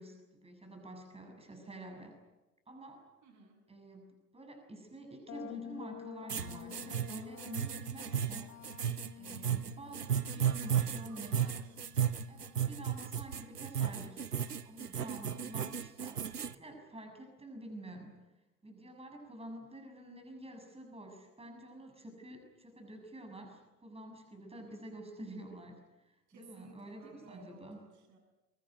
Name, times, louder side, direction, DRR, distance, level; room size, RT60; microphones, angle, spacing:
voice 1, 0.0-2.2 2.7-3.1 3.7-8.5 9.2-11.5 12.3-14.3 14.6-18.2 18.6-27.8, right 1 dB, 15° right, 3 dB, 6.7 m, -49 dB
voice 2, 3.2-3.6 10.3-11.8 24.5-24.8 26.3-28.2, right 3 dB, 40° right, 4 dB, 7.9 m, -57 dB
sound 1, 5.3-12.9, left 11 dB, 30° left, 1.4 m, -51 dB
sound 2, 6.3-16.5, right 8 dB, 80° right, 0.9 m, -34 dB
23.5 x 23.0 x 9.3 m, 1.1 s
figure-of-eight pair, 75°, 46 cm